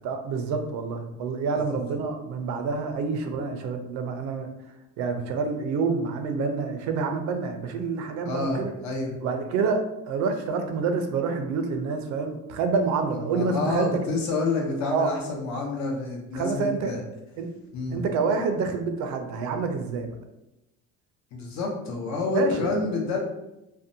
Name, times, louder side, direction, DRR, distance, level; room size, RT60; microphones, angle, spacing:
voice 1, 0.0-4.5 5.0-8.7 9.2-13.9 14.9-15.1 16.3-16.9 17.4-17.5 17.9-20.1 22.3-22.5, right 4 dB, 75° right, 6 dB, 0.5 m, -27 dB
voice 2, 8.2-9.1 13.1-17.0 17.7-18.0 21.3-23.2, left 3 dB, 70° left, -1 dB, 0.8 m, -28 dB
2.6 x 2.1 x 2.6 m, 0.92 s
cardioid pair, 110°, 29 cm